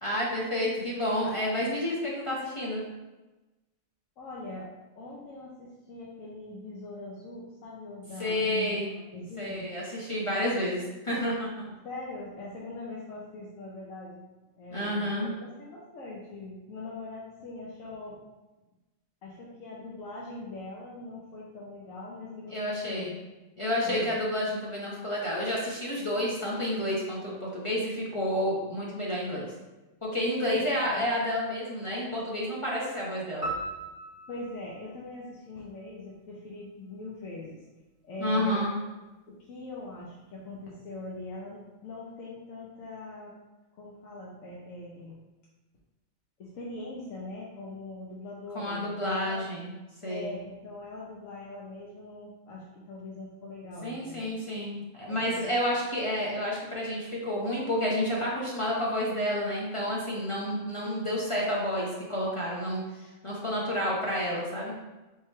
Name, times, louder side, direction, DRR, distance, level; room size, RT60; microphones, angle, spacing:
voice 1, 0.0-2.8 8.2-8.9 9.4-11.6 14.7-15.3 22.5-23.1 23.6-29.5 30.0-33.5 38.2-38.7 48.5-49.7 50.0-50.3 53.8-64.7, left 1 dB, 30° left, -5 dB, 0.7 m, -30 dB
voice 2, 4.2-4.7 5.0-9.6 11.7-14.2 14.6-18.2 19.2-23.1 23.8-24.1 30.4-31.0 34.3-37.6 38.0-38.7 39.3-43.3 43.8-45.1 46.4-49.4 50.0-54.3 55.1-55.2 55.5-55.6, left 2 dB, 90° left, -5 dB, 1.2 m, -41 dB
sound 1, 33.4-35.9, right 2 dB, 65° right, 1.2 m, -38 dB
3.6 x 3.2 x 4.2 m, 1.1 s
omnidirectional pair, 1.3 m